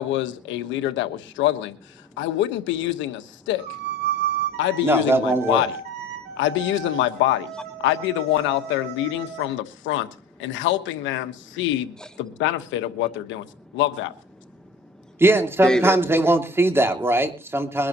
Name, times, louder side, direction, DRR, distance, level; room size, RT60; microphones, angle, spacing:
voice 1, 0.0-1.8 2.2-3.6 4.6-5.7 6.4-7.5 7.8-10.1 10.4-13.4 13.7-14.1, left 14 dB, 90° left, 1.2 m, -25 dB
sound 1, 3.6-9.5, right 10 dB, 65° right, 6.6 m, -32 dB
voice 2, 4.1-4.6 6.1-6.4 10.5-10.7 11.3-11.4 12.0-12.2 13.6-13.8 14.4-15.2 15.6-16.0, equal, 5° left, 1.2 m, -30 dB
voice 3, 4.8-5.6 15.2-17.9, right 2 dB, 15° right, 2.4 m, -20 dB
22.5 x 11.5 x 3.0 m
cardioid pair, 95°, 19 cm